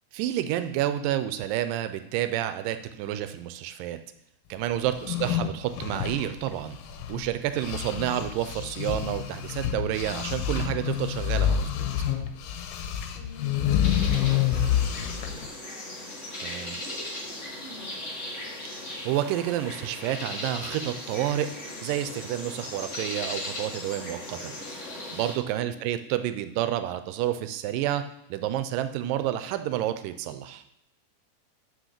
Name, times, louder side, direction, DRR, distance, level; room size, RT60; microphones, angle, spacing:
voice 1, 0.1-4.0 4.5-6.8 7.1-11.7 16.4-16.7 19.1-21.5 21.8-24.5 25.1-28.0 28.3-30.6, right 12 dB, 90° right, 10 dB, 2.3 m, -29 dB
sound 1, 4.9-7.3 7.6-15.5, left 10 dB, 90° left, 2.3 m, -28 dB
voice 2, 5.0-5.6 13.1-16.1 16.7-18.1 25.6-26.0, equal, 40° right, -3 dB, 2.6 m, -48 dB
sound 2, 13.8-25.3, left 1 dB, 45° left, 0.9 m, -38 dB
6.2 x 5.2 x 6.6 m, 0.81 s
omnidirectional pair, 3.8 m